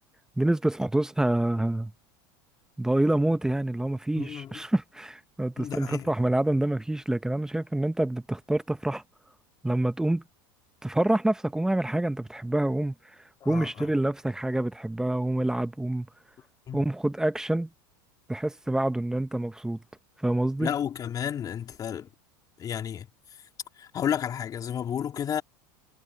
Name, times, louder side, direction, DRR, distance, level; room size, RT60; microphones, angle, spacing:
voice 1, 0.4-1.9 2.8-9.0 9.6-10.2 10.8-12.9 13.4-16.1 16.7-17.7 18.3-19.8 20.2-20.7, right 1 dB, 5° right, 0.7 m, -27 dB
voice 2, 4.1-4.6 5.6-6.1 13.4-13.9 16.7-16.8 20.6-22.1 22.6-23.1 23.8-25.4, left 9 dB, 35° left, 3.2 m, -32 dB
supercardioid pair, 120°, 12 cm